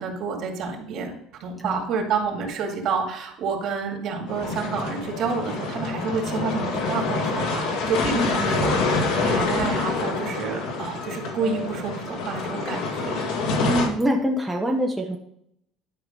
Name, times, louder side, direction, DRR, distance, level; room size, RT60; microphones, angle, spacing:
voice 1, 0.0-13.2, right 5 dB, 50° right, 2 dB, 2.2 m, -29 dB
sound 1, 4.3-13.9, left 3 dB, 70° left, 2.2 m, -26 dB
voice 2, 8.1-8.5 13.6-15.2, equal, 5° right, 0 dB, 0.8 m, -24 dB
11.0 x 4.9 x 5.3 m, 0.71 s
cardioid pair, 150°, 0 cm